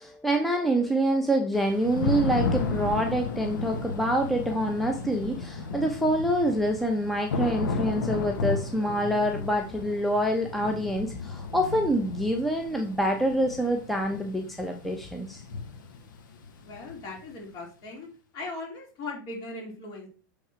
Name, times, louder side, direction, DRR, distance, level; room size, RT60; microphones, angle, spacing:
voice 1, 0.0-15.4, right 1 dB, ahead, 2 dB, 0.8 m, -26 dB
Thunder / Rain, 1.5-17.3, left 4 dB, 85° left, 1.2 m, -34 dB
voice 2, 16.6-18.1 18.3-20.1, left 2 dB, 40° left, 0 dB, 3.2 m, -38 dB
7.7 x 3.7 x 4.5 m, 0.38 s
hypercardioid pair, 125°, 10 cm